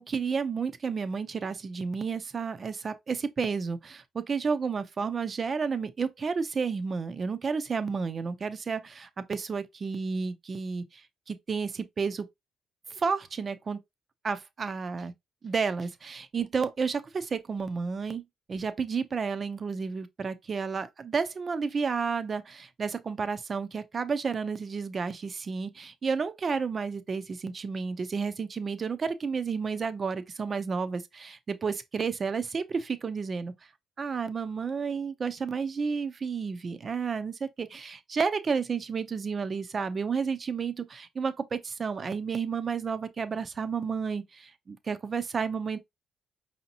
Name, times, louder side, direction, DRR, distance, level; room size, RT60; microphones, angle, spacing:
voice 1, 0.0-12.3 12.9-13.8 14.2-15.1 15.4-18.2 18.5-33.5 34.0-45.8, right 5 dB, 40° right, 0.6 m, -31 dB
5.0 x 2.8 x 2.6 m
cardioid pair, 100°, 0 cm